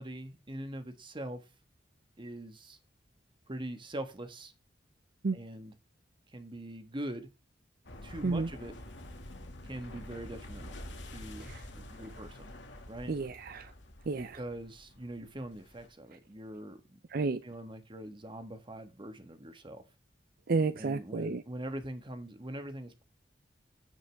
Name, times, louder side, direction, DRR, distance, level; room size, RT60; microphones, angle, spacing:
voice 1, 0.0-1.4 2.2-2.8 3.5-4.5 5.3-5.7 6.3-7.3 8.0-8.7 9.6-12.5 12.9-13.1 14.1-17.0 17.4-19.8 20.8-23.0, right 1 dB, 25° right, 1.5 m, -43 dB
sound 1, 7.8-15.9, left 1 dB, 75° left, 2.1 m, -48 dB
voice 2, 13.1-13.7 14.1-14.4 17.1-17.4 20.5-21.4, right 3 dB, 55° right, 0.5 m, -31 dB
16.0 x 5.3 x 3.5 m
head